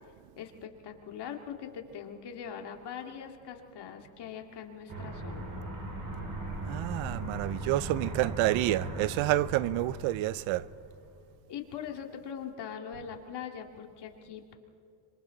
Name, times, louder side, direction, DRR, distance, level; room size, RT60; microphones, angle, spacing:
voice 1, 0.4-5.5 11.5-14.5, left 8 dB, 55° left, 2.5 m, -42 dB
Aircraft, 4.9-11.0, right 1 dB, 45° right, 6.0 m, -38 dB
voice 2, 6.7-10.7, right 16 dB, 75° right, 0.7 m, -29 dB
26.5 x 25.0 x 4.0 m
supercardioid pair, 95°, 49 cm